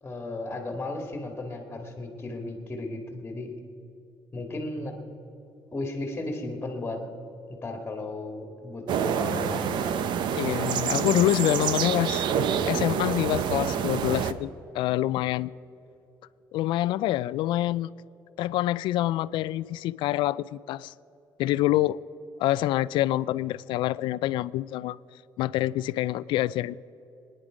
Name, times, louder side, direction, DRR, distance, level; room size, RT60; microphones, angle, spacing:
voice 1, 0.0-3.5 4.3-5.0 5.7-7.0 7.5-9.8, left 2 dB, 20° left, 2.1 m, -35 dB
sound 1, 8.9-14.3, right 7 dB, 70° right, 0.8 m, -27 dB
voice 2, 10.3-12.2 12.7-14.5 14.7-15.5 16.5-17.9 18.4-20.9 21.4-22.0 22.4-25.0 25.4-26.8, left 15 dB, 85° left, 0.3 m, -26 dB
25.5 x 10.0 x 5.1 m
cardioid pair, 125°, 8 cm